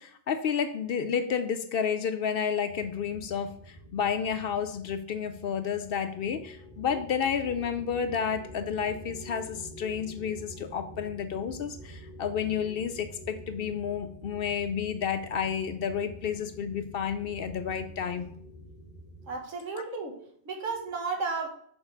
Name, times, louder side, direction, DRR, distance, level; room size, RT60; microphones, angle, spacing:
voice 1, 0.0-18.3 19.7-19.8, left 7 dB, 60° left, 9 dB, 0.6 m, -31 dB
sound 1, 2.7-19.4, equal, 20° right, 2.1 m, -47 dB
voice 2, 19.3-21.5, right 4 dB, 85° right, 3 dB, 1.6 m, -33 dB
6.2 x 3.8 x 5.1 m, 0.63 s
omnidirectional pair, 1.3 m